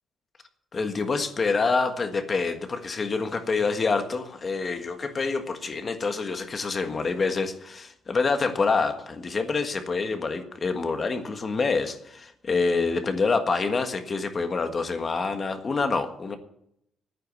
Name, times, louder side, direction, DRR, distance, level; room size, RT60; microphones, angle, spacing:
voice 1, 0.7-16.4, left 4 dB, 35° left, 7 dB, 1.5 m, -26 dB
10.5 x 9.5 x 9.5 m, 0.75 s
cardioid pair, 125°, 0 cm